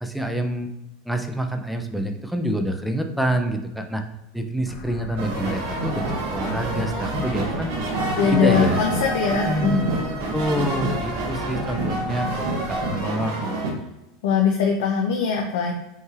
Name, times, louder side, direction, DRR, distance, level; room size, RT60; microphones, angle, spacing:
voice 1, 0.0-0.7 1.1-4.0 4.3-7.8 8.3-8.9 9.5-9.9 10.3-13.3, right 1 dB, ahead, 5 dB, 0.3 m, -27 dB
sound 1, 4.7-13.0, left 1 dB, 35° left, 0.6 m, -38 dB
sound 2, 5.2-13.7, right 2 dB, 75° right, 1.2 m, -27 dB
voice 2, 8.2-9.9 14.2-15.7, left 6 dB, 75° left, 1 dB, 0.6 m, -21 dB
5.4 x 3.1 x 2.4 m, 0.93 s
supercardioid pair, 180°, 0 cm